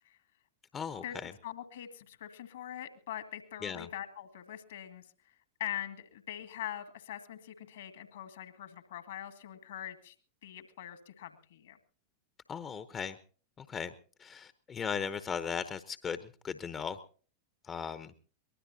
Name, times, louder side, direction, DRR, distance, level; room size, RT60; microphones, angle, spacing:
voice 1, 0.7-1.3 3.6-3.9 12.5-13.2 13.6-13.9 14.2-16.2 16.4-17.0 17.7-18.1, left 6 dB, 25° left, 13 dB, 0.9 m, -37 dB
voice 2, 1.4-5.1 5.6-10.1 10.4-11.8, left 11 dB, 60° left, 9 dB, 2.1 m, -43 dB
23.5 x 20.0 x 2.8 m, 0.42 s
figure-of-eight pair, 90°, 0 cm